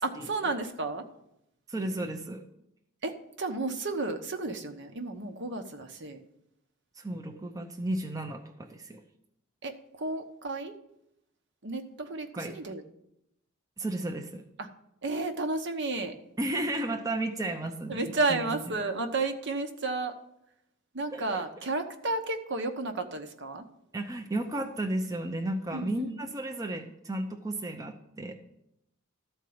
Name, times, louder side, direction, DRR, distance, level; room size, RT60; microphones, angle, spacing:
voice 1, 0.0-1.0 3.0-6.2 9.6-10.8 11.6-12.8 14.6-14.7 15.0-16.1 17.9-20.1 20.9-23.6 25.7-26.2, right 3 dB, 55° right, 6 dB, 1.1 m, -32 dB
voice 2, 1.7-2.4 7.0-9.0 12.3-12.6 13.8-14.4 16.4-18.5 21.1-21.4 23.9-28.3, right 1 dB, 15° right, 3 dB, 0.7 m, -33 dB
13.5 x 4.5 x 8.6 m, 0.80 s
head